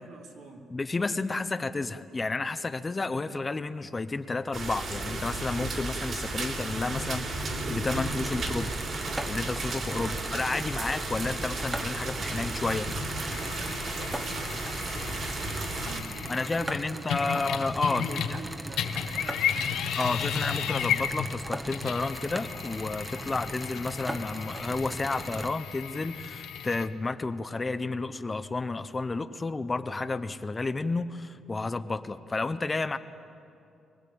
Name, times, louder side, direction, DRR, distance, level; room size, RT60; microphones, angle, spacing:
voice 1, 0.0-0.6 9.9-10.2 13.2-17.4 17.8-19.8, right 4 dB, 75° right, 0 dB, 2.8 m, -45 dB
voice 2, 0.7-8.7 9.3-12.9 16.3-18.4 20.0-33.0, left 3 dB, 20° left, 11 dB, 0.6 m, -31 dB
sound 1, 4.5-16.0, right 2 dB, 45° right, 3.1 m, -34 dB
sound 2, 7.8-25.5, right 1 dB, 10° right, 1.0 m, -39 dB
sound 3, 13.3-18.5 18.7-26.9, left 8 dB, 85° left, 1.3 m, -34 dB
24.0 x 18.5 x 8.5 m, 2.6 s
cardioid pair, 135°, 0 cm